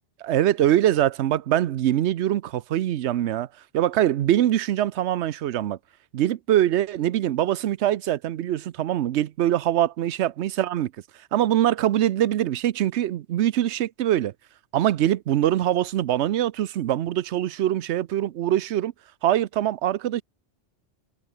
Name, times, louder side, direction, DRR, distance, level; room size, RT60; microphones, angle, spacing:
voice 1, 0.2-3.5 3.7-5.8 6.1-10.9 11.3-14.3 14.7-18.9 19.2-20.2, right 12 dB, 75° right, 0.9 m, -23 dB
omnidirectional pair, 1.2 m